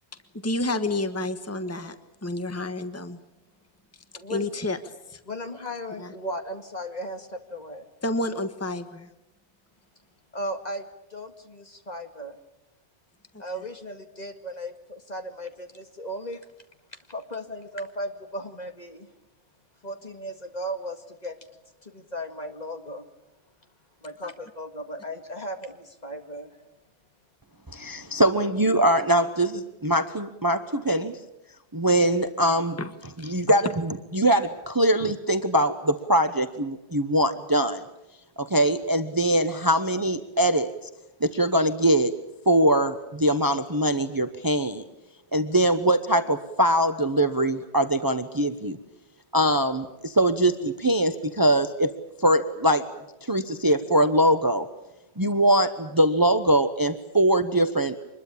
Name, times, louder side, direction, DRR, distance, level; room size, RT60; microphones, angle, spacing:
voice 1, 0.4-2.0 2.2-3.2 4.3-5.2 6.0-6.1 8.0-9.1 13.3-13.6 24.2-24.3 32.8-32.9 33.2-33.6, left 2 dB, 15° left, 9 dB, 1.4 m, -30 dB
voice 2, 4.1-4.5 5.3-7.9 10.3-10.8 11.1-12.4 13.4-16.5 17.1-19.1 19.8-21.4 21.8-23.0 24.0-26.6, equal, 40° left, 6 dB, 2.1 m, -36 dB
voice 3, 27.7-31.2 31.7-32.8 33.2-33.7 34.1-37.8 38.4-40.7 41.2-42.1 42.5-44.8 45.3-48.8 49.3-51.9 52.2-52.8 53.2-54.7 55.2-58.0, right 1 dB, 20° right, 10 dB, 0.9 m, -22 dB
25.5 x 21.0 x 8.7 m, 0.91 s
omnidirectional pair, 1.1 m